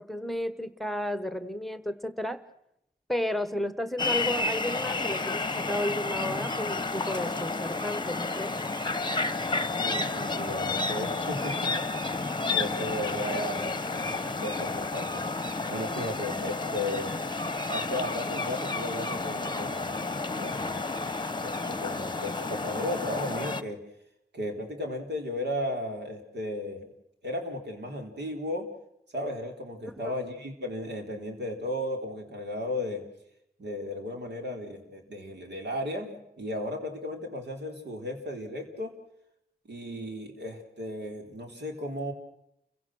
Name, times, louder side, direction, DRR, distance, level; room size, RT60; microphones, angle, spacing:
voice 1, 0.0-2.4 3.1-8.6 29.8-30.1, left 1 dB, ahead, 12 dB, 1.2 m, -33 dB
sound 1, 4.0-23.6, left 3 dB, 25° left, 0.9 m, -31 dB
voice 2, 9.8-12.1 12.5-17.2 17.7-20.0 20.4-21.0 21.4-23.8 24.3-26.9 27.2-28.7 29.1-33.0 33.6-39.0 39.6-42.1, left 1 dB, 85° right, 2 dB, 4.2 m, -35 dB
30.0 x 17.0 x 6.2 m, 0.78 s
wide cardioid pair, 65°, 17 cm